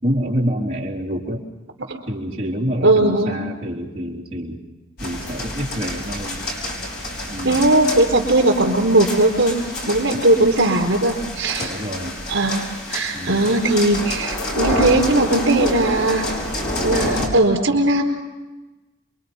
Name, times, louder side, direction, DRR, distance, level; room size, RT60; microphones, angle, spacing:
voice 1, 0.0-1.4 2.1-4.6 5.0-6.4 7.3-7.7 10.1-10.2 11.6-12.1 13.1-13.5, equal, 30° right, -3 dB, 3.7 m, -27 dB
voice 2, 2.8-3.4 7.4-9.6 9.8-11.7 12.3-16.2 16.8-18.0, right 2 dB, 75° right, 1 dB, 4.4 m, -18 dB
sound 1, 5.0-17.3, left 1 dB, 50° left, 6.1 m, -28 dB
28.5 x 23.0 x 5.4 m, 1.1 s
head